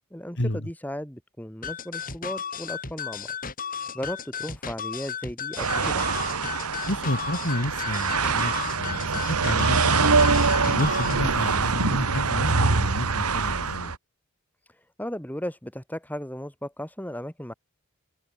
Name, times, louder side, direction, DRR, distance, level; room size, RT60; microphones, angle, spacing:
voice 1, 0.1-3.3 3.9-6.0 15.0-17.5, equal, 5° left, 3.6 m, -35 dB
sound 1, 1.6-11.2, left 7 dB, 40° left, 5.5 m, -34 dB
sound 2, 5.6-14.0, right 4 dB, 85° right, 1.8 m, -24 dB
voice 2, 6.9-10.1 10.7-13.9, left 1 dB, 55° left, 3.1 m, -30 dB
head